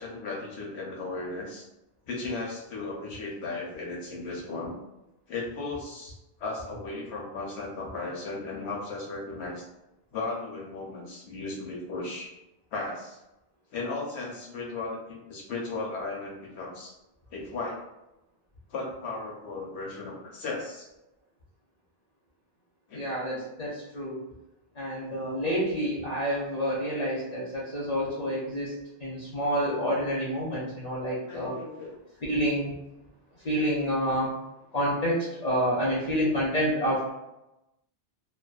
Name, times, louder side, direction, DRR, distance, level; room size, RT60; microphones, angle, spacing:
voice 1, 0.0-1.7 2.1-4.7 5.3-9.6 10.1-12.3 12.7-13.2 13.7-16.9 17.3-17.8 18.7-20.9 22.9-23.0 31.3-31.9, left 3 dB, 85° left, -2 dB, 1.0 m, -36 dB
voice 2, 22.9-24.2 24.8-28.7 29.0-31.5 32.2-32.7 33.4-34.3 34.7-37.1, equal, 45° left, -7 dB, 0.6 m, -28 dB
2.5 x 2.1 x 2.3 m, 0.93 s
omnidirectional pair, 1.1 m